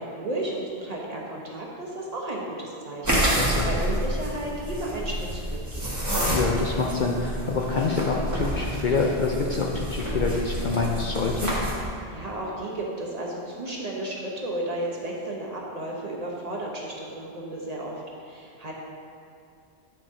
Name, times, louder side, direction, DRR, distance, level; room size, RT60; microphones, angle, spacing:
voice 1, 0.0-6.0 12.1-18.7, right 1 dB, 40° right, -3 dB, 0.9 m, -33 dB
sound 1, 3.0-11.9, equal, 15° right, 1.5 m, -28 dB
voice 2, 3.2-3.7 6.3-11.5, left 4 dB, 55° left, -1 dB, 0.6 m, -26 dB
8.8 x 5.7 x 2.7 m, 2.5 s
omnidirectional pair, 1.1 m